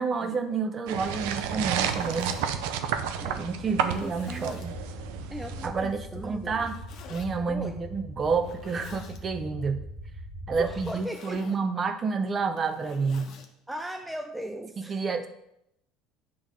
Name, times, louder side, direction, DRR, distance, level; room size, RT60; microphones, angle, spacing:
voice 1, 0.0-2.4 3.4-4.7 5.6-6.8 7.1-9.8 10.5-13.4 14.9-15.3, right 5 dB, 35° right, 8 dB, 0.8 m, -29 dB
sound 1, 0.9-10.9, equal, 55° right, 1.6 m, -41 dB
sound 2, 0.9-5.7, right 9 dB, 85° right, 0.6 m, -31 dB
Zipper (clothing), 1.5-2.4 3.1-3.2 3.8-4.7 6.5-7.3 8.3-9.2 10.7-11.6 12.4-13.5, left 6 dB, 55° left, 1.0 m, -48 dB
voice 2, 3.8-4.6 5.3-6.7 7.5-7.8 10.5-11.6 13.7-15.0, right 1 dB, 5° right, 5 dB, 0.4 m, -38 dB
9.2 x 3.5 x 5.1 m, 0.80 s
supercardioid pair, 110°, 0 cm